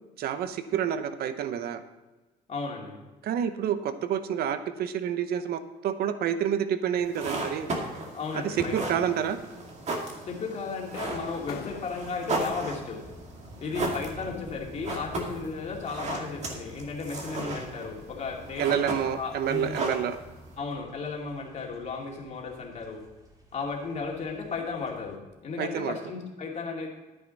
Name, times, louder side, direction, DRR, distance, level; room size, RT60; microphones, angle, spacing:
voice 1, 0.2-1.8 3.2-7.7 8.3-9.4 13.8-13.9 18.6-20.2 25.6-26.0, right 9 dB, 65° right, 11 dB, 0.9 m, -28 dB
voice 2, 2.5-3.0 8.1-9.1 10.2-13.0 13.6-18.8 19.2-19.7 20.6-23.0 23.5-26.9, left 4 dB, 40° left, -1 dB, 2.5 m, -35 dB
sound 1, 7.0-20.6, right 2 dB, 40° right, 2.1 m, -36 dB
sound 2, 10.2-12.8 13.9-15.8 16.3-16.5 17.0-17.2, left 9 dB, 65° left, 0.9 m, -47 dB
sound 3, 11.0-25.2, equal, 20° right, 2.3 m, -51 dB
11.0 x 9.5 x 4.1 m, 1.1 s
cardioid pair, 110°, 17 cm